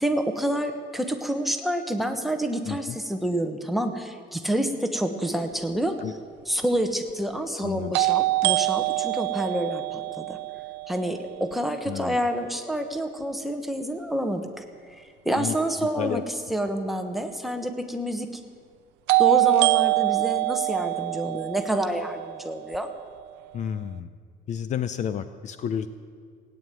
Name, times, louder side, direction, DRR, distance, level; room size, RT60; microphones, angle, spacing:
voice 1, 0.0-6.2 6.4-10.4 10.9-14.6 15.0-18.3 19.2-22.9, right 1 dB, ahead, 5 dB, 1.1 m, -28 dB
voice 2, 2.7-3.0 6.0-6.1 7.6-7.9 11.9-12.2 15.4-15.5 16.0-16.2 23.5-24.1 24.5-25.9, left 9 dB, 45° left, 13 dB, 0.6 m, -30 dB
sound 1, 6.0-6.1 7.9-11.8 19.1-23.1, right 23 dB, 90° right, 0.4 m, -25 dB
17.0 x 9.4 x 8.9 m, 2.1 s
cardioid pair, 150°, 17 cm